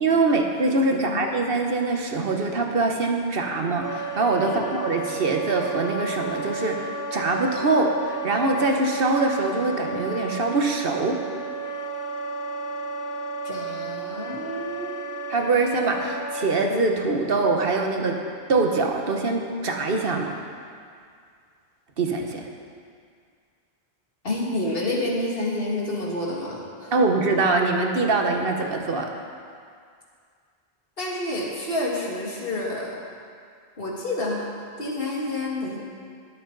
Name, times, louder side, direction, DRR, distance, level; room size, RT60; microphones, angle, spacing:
voice 1, 0.0-11.2 15.3-18.2 18.5-20.4 22.0-22.5 26.9-29.1, right 3 dB, 65° right, 2 dB, 1.3 m, -23 dB
voice 2, 0.9-1.3 4.4-4.6 13.4-15.0 24.2-26.9 31.0-33.0 33.8-34.5 34.8-35.8, left 1 dB, 65° left, -3 dB, 2.2 m, -29 dB
Wind instrument woodwind instrument, 3.8-16.7, right 3 dB, 20° left, 0.7 m, -33 dB
21.0 x 8.1 x 4.0 m, 2.2 s
omnidirectional pair, 1.0 m